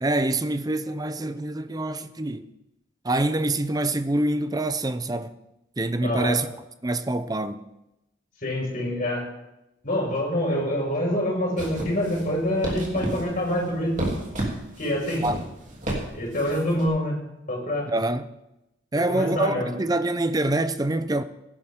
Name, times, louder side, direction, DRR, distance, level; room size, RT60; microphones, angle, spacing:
voice 1, 0.0-2.5 3.0-5.3 5.8-6.5 6.8-7.6 15.2-15.4 17.9-18.3 18.9-21.2, right 2 dB, 20° right, 0.5 m, -25 dB
voice 2, 6.0-6.4 8.4-9.3 9.8-14.1 14.8-15.3 16.1-17.2 17.5-17.9 18.9-19.7, left 1 dB, 45° left, 5.4 m, -26 dB
sound 1, 11.6-16.9, right 1 dB, 40° right, 2.9 m, -33 dB
17.5 x 11.0 x 3.7 m
head